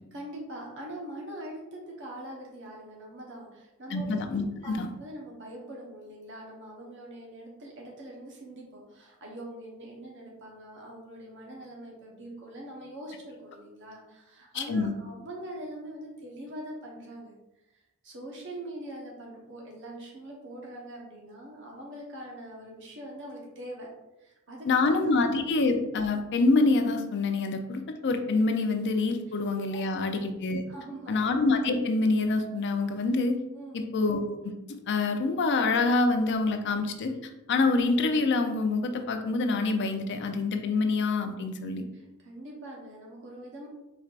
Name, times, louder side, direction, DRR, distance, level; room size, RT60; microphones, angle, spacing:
voice 1, 0.1-4.1 4.6-17.3 17.7-23.9 24.2-25.2 29.7-30.0 30.7-31.2 33.5-33.8 41.9-43.7, right 1 dB, 60° right, -2 dB, 1.1 m, -43 dB
voice 2, 3.9-4.9 14.5-14.9 24.6-30.6 31.1-33.4 33.7-37.1 37.5-41.8, left 3 dB, 55° left, 6 dB, 0.5 m, -26 dB
4.5 x 4.3 x 2.5 m, 0.97 s
head